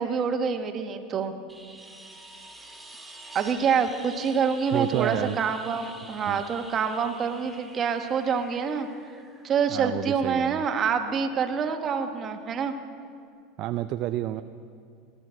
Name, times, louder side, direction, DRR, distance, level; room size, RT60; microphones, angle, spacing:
voice 1, 0.0-1.3 3.3-8.9 9.4-12.7, right 6 dB, 35° right, 6 dB, 1.3 m, -26 dB
sound 1, 1.5-10.2 12.5-12.6, right 2 dB, 5° right, 2.4 m, -47 dB
voice 2, 4.7-5.4 6.3-6.4 9.7-10.6 13.6-14.4, right 14 dB, 55° right, 10 dB, 0.4 m, -29 dB
18.0 x 11.5 x 6.3 m, 2.3 s
supercardioid pair, 110°, 0 cm